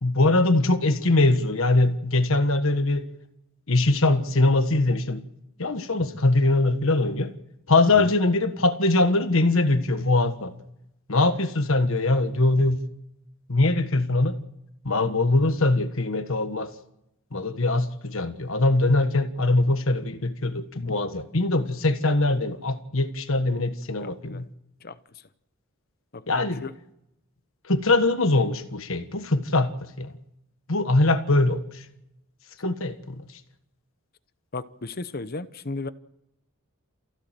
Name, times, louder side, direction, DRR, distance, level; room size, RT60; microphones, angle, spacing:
voice 1, 0.0-3.0 3.7-5.2 5.6-7.3 7.7-10.5 11.1-12.8 13.5-14.4 14.8-16.7 17.3-24.5 26.3-26.6 27.6-30.1 30.7-31.8 32.6-33.3, left 2 dB, 60° left, 1.5 m, -22 dB
voice 2, 24.0-24.4 24.8-25.0 26.1-26.2 26.6-26.7 34.5-35.9, left 3 dB, 45° left, 0.9 m, -34 dB
28.5 x 15.5 x 7.6 m
head